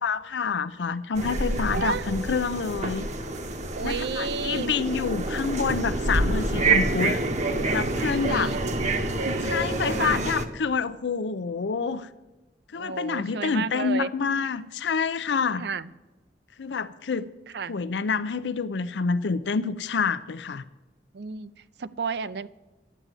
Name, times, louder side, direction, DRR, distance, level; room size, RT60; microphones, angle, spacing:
voice 1, 0.0-3.1 3.8-7.2 7.7-8.5 9.5-12.1 12.7-15.7 16.6-17.3 17.7-20.6, left 5 dB, 90° left, 13 dB, 0.5 m, -27 dB
sound 1, 1.1-10.5, right 2 dB, 40° right, 1.0 m, -27 dB
voice 2, 1.7-2.1 3.7-4.7 8.2-8.9 9.2-9.5 9.9-10.2 12.7-14.1 15.6-15.9 17.5-17.8 21.1-21.5 21.8-22.5, right 5 dB, 70° right, 15 dB, 0.5 m, -32 dB
11.0 x 8.8 x 8.1 m, 1.1 s
head